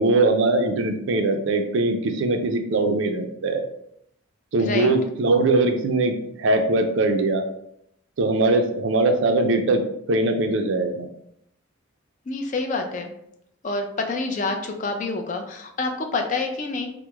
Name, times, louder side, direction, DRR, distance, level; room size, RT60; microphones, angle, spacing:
voice 1, 0.0-3.6 4.5-7.4 8.2-9.8 10.1-11.1, right 2 dB, 60° right, 6 dB, 0.4 m, -21 dB
voice 2, 4.6-4.9 12.3-13.1 13.6-16.9, left 3 dB, 35° left, 4 dB, 0.4 m, -27 dB
3.0 x 2.0 x 3.3 m, 0.74 s
head